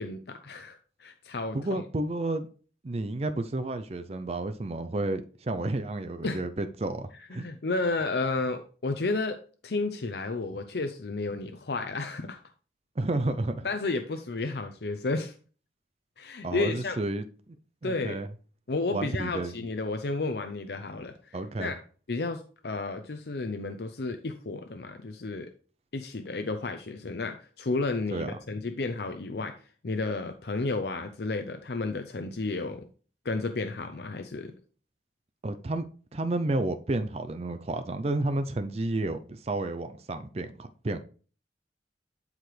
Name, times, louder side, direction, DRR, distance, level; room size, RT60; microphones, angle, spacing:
voice 1, 0.0-1.8 6.2-6.4 7.3-9.4 9.6-12.4 13.6-15.3 16.2-17.0 17.8-18.2 18.7-21.7 22.1-25.5 25.9-29.5 29.8-32.8 33.2-34.5, left 3 dB, 65° left, 7 dB, 0.6 m, -32 dB
voice 2, 1.5-2.5 2.8-7.5 13.0-13.7 16.4-17.6 17.8-18.3 18.9-19.5 21.3-21.7 28.1-28.3 35.4-35.9 36.1-41.0, right 2 dB, 35° right, 10 dB, 0.5 m, -31 dB
11.5 x 4.9 x 3.3 m, 0.41 s
head